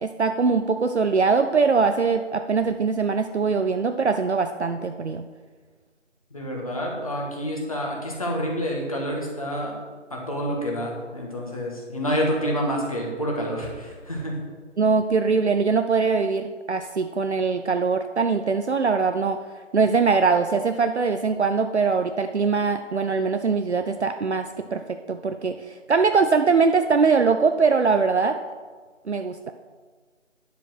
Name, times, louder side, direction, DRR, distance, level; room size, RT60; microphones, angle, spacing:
voice 1, 0.0-5.3 14.8-19.4 19.7-28.4 29.1-29.5, right 5 dB, 60° right, 7 dB, 0.6 m, -22 dB
voice 2, 6.3-9.7 10.1-14.4, equal, 30° left, -1 dB, 1.5 m, -28 dB
10.0 x 5.0 x 6.1 m, 1.4 s
figure-of-eight pair, 170°, 38 cm